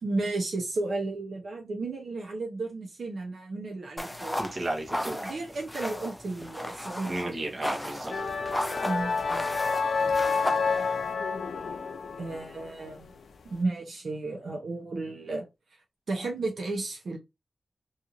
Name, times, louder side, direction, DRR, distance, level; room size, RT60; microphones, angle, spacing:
voice 1, 0.0-4.5 5.2-7.4 8.8-9.5 12.2-13.1 13.4-15.5 16.1-17.2, right 3 dB, 70° right, 0.7 m, -33 dB
sound 1, 4.0-11.1, left 1 dB, 5° left, 0.3 m, -36 dB
voice 2, 4.4-5.3 7.0-8.2, right 1 dB, 40° right, 0.9 m, -33 dB
sound 2, 8.1-13.2, left 4 dB, 85° left, 0.4 m, -29 dB
2.6 x 2.4 x 2.9 m
wide cardioid pair, 140°, 0 cm